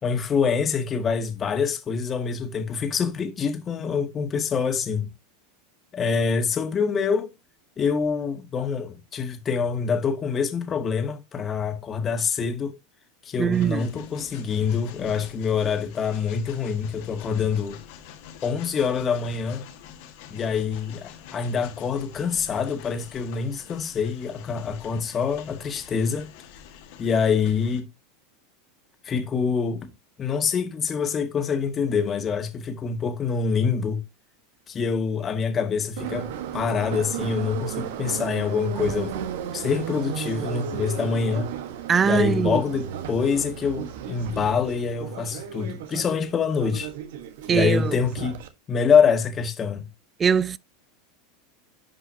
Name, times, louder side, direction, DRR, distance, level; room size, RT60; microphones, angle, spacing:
voice 1, 0.0-5.1 5.9-7.3 7.8-12.8 13.2-17.8 18.4-19.6 20.3-26.3 27.0-27.9 29.0-29.9 30.2-34.0 34.7-36.3 36.5-39.1 39.5-41.5 42.0-46.9 47.5-48.4 48.7-49.9, left 6 dB, 30° left, 2.0 m, -25 dB
voice 2, 13.4-13.9 41.9-42.6 47.5-48.0 50.2-50.6, right 7 dB, 25° right, 0.5 m, -21 dB
Train, 13.5-27.8, left 8 dB, 65° left, 2.0 m, -46 dB
Subway metro underground, 36.0-48.5, right 9 dB, 70° right, 1.3 m, -34 dB
11.0 x 5.4 x 2.8 m
hypercardioid pair, 100°, 0 cm